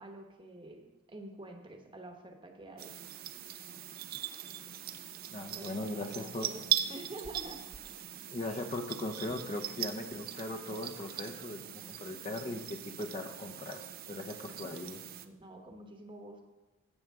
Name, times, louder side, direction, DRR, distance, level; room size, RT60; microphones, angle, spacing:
voice 1, 0.0-2.9 5.5-6.6 6.9-7.7 15.2-16.4, right 1 dB, 25° right, 4 dB, 1.1 m, -48 dB
sound 1, 2.8-15.3, right 11 dB, 45° right, 0.5 m, -40 dB
voice 2, 5.3-6.5 8.3-13.8 14.1-15.0, left 2 dB, 30° left, 5 dB, 0.7 m, -39 dB
15.0 x 7.9 x 3.7 m, 1.1 s
head